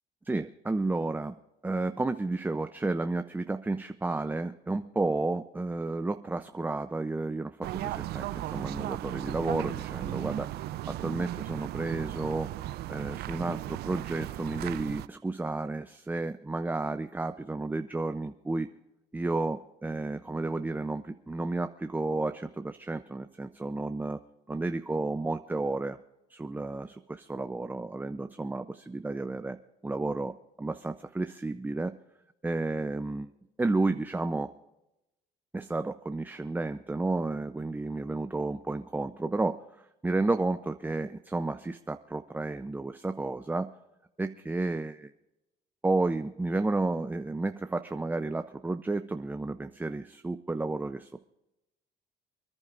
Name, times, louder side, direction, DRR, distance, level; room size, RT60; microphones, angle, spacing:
voice 1, 0.3-10.5 10.9-12.5 12.9-18.7 19.1-24.2 24.5-26.0 26.3-29.6 29.8-31.9 32.4-33.3 33.6-34.5 35.5-43.7 44.2-45.1 45.8-51.3, right 2 dB, 10° right, 8 dB, 0.6 m, -32 dB
sound 1, 7.6-15.1, right 14 dB, 70° right, 0.5 m, -36 dB
28.5 x 11.0 x 2.5 m, 0.92 s
cardioid pair, 110°, 17 cm